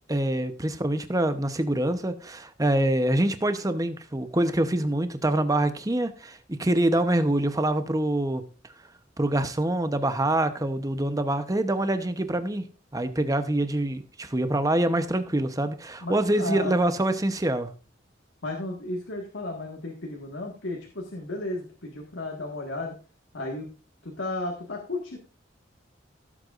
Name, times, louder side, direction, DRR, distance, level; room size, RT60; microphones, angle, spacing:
voice 1, 0.1-8.4 9.2-12.6 12.9-17.7, right 1 dB, 20° right, 0.8 m, -25 dB
voice 2, 16.0-16.7 18.4-23.0 23.3-23.7 24.0-25.2, left 2 dB, 85° left, 1.7 m, -34 dB
15.5 x 8.0 x 2.5 m
head